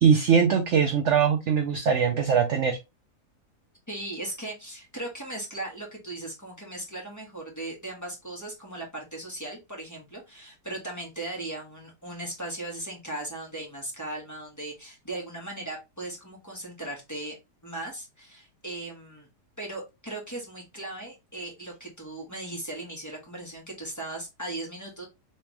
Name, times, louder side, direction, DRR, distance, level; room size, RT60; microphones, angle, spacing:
voice 1, 0.0-2.8, right 7 dB, 70° right, 5 dB, 0.7 m, -21 dB
voice 2, 3.9-17.4 17.6-19.3 19.6-25.1, right 2 dB, 10° left, -3 dB, 1.3 m, -38 dB
3.4 x 3.3 x 3.2 m, 0.23 s
omnidirectional pair, 1.8 m